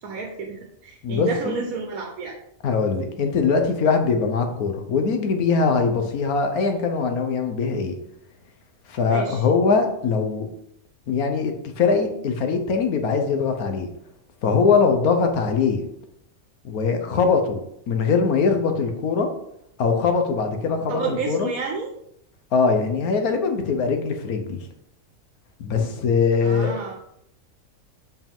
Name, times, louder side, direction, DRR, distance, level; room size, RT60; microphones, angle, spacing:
voice 1, 0.0-2.4 9.1-9.4 20.9-21.9 26.4-27.0, right 5 dB, 80° right, 2 dB, 1.4 m, -30 dB
voice 2, 1.0-1.6 2.6-7.9 8.9-10.5 11.1-13.9 14.4-15.8 16.6-17.6 17.9-19.3 19.8-21.5 22.5-24.6 25.6-26.7, left 5 dB, 90° left, 5 dB, 1.4 m, -22 dB
7.9 x 4.8 x 3.6 m, 0.76 s
omnidirectional pair, 1.5 m